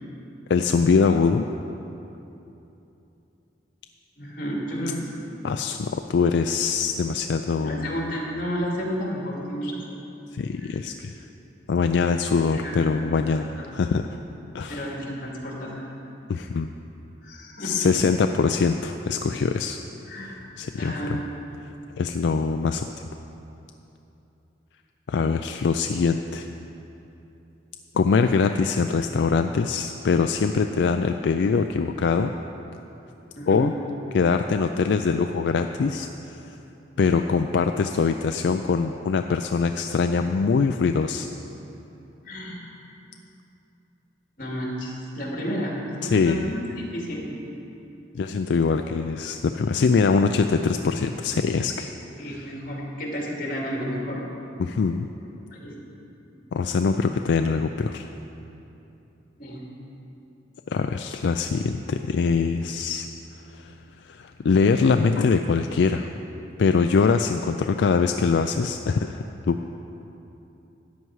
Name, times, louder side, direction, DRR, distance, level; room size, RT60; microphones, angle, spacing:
voice 1, 0.5-1.5 5.4-7.9 10.3-11.1 11.7-14.1 14.5-14.8 16.3-16.7 17.6-19.8 20.6-21.2 22.0-22.9 25.1-26.5 27.9-32.3 33.5-33.7 34.1-36.4 37.0-41.3 46.0-46.5 48.2-51.9 54.6-55.1 56.5-58.1 60.7-63.1 63.5-63.7 64.0-66.1 66.6-69.6, left 5 dB, 80° left, 6 dB, 0.4 m, -23 dB
voice 2, 4.2-5.3 7.6-9.8 10.6-10.8 12.5-12.8 13.3-13.7 14.7-15.8 17.2-17.9 20.1-20.3 20.8-21.2 33.3-33.6 42.2-42.6 44.4-47.3 52.2-54.2 55.5-55.7 59.4-59.6, equal, 50° left, -2 dB, 2.4 m, -31 dB
13.5 x 9.5 x 4.7 m, 2.9 s
head